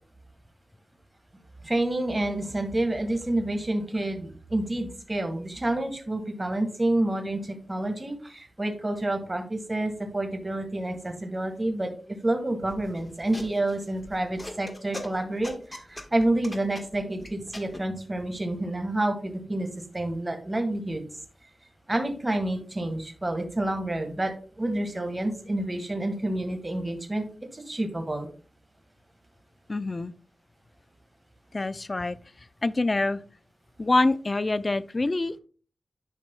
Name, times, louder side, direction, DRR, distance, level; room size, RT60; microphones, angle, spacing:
voice 1, 1.6-21.0 21.9-27.2 27.5-28.3, right 1 dB, 30° right, 5 dB, 1.5 m, -29 dB
sound 1, 12.6-17.8, left 1 dB, 20° left, 1.4 m, -41 dB
voice 2, 29.7-30.1 31.5-32.2 32.6-33.2 33.8-35.4, left 2 dB, 40° left, 15 dB, 0.4 m, -25 dB
11.0 x 5.3 x 2.2 m, 0.39 s
cardioid pair, 60°, 0 cm